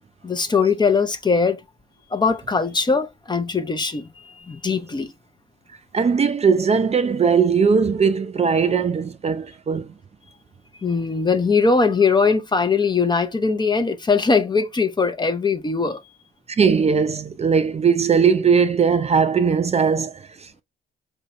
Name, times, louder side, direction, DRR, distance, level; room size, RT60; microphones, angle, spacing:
voice 1, 0.2-1.6 2.1-5.1 10.8-16.0, left 4 dB, 20° left, 0.7 m, -21 dB
voice 2, 5.9-9.9 16.6-20.6, right 6 dB, 30° right, 0.6 m, -19 dB
4.8 x 2.8 x 3.1 m
cardioid pair, 90°, 20 cm